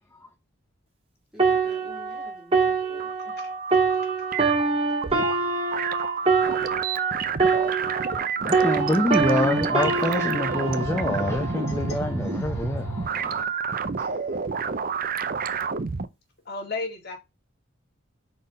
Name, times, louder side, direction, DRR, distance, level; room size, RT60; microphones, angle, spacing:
voice 1, 1.3-3.4, left 1 dB, 5° right, 3.0 m, -48 dB
sound 1, 1.4-8.3 8.5-12.1 12.7-13.0, right 4 dB, 30° right, 1.9 m, -25 dB
sound 2, 2.8-16.1, right 5 dB, 45° right, 0.6 m, -29 dB
voice 2, 8.4-13.5 14.0-14.1, left 1 dB, 15° left, 0.8 m, -26 dB
voice 3, 16.5-17.2, left 3 dB, 55° left, 2.1 m, -33 dB
5.5 x 4.3 x 5.3 m
head